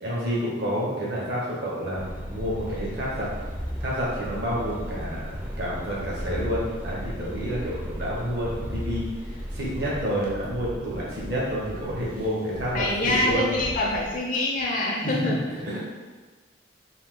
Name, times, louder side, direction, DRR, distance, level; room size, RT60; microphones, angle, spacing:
voice 1, 0.0-3.3 3.8-13.5 15.0-15.1 15.6-15.8, equal, 65° right, -6 dB, 1.1 m, -29 dB
sound 1, 2.0-10.0, equal, 10° right, 0.4 m, -35 dB
sound 2, 2.6-14.2, right 1 dB, 50° right, 0.7 m, -43 dB
voice 2, 12.7-15.6, left 1 dB, 45° left, -1 dB, 0.5 m, -25 dB
3.7 x 2.7 x 3.7 m, 1.3 s
head